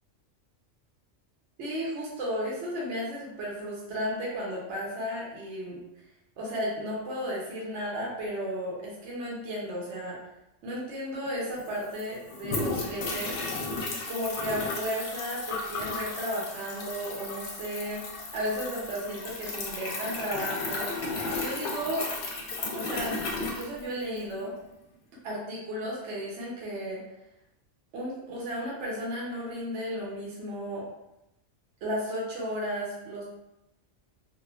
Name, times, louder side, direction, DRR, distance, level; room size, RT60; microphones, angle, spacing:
voice 1, 1.6-5.8 6.4-10.2 10.6-13.4 14.0-22.1 22.6-24.5 25.2-27.0 27.9-30.9 31.8-33.2, equal, 75° right, -5 dB, 1.0 m, -34 dB
sound 1, 11.3-11.4 11.5-24.3, left 3 dB, 65° left, 0.8 m, -34 dB
3.0 x 2.2 x 2.4 m, 0.88 s
omnidirectional pair, 1.3 m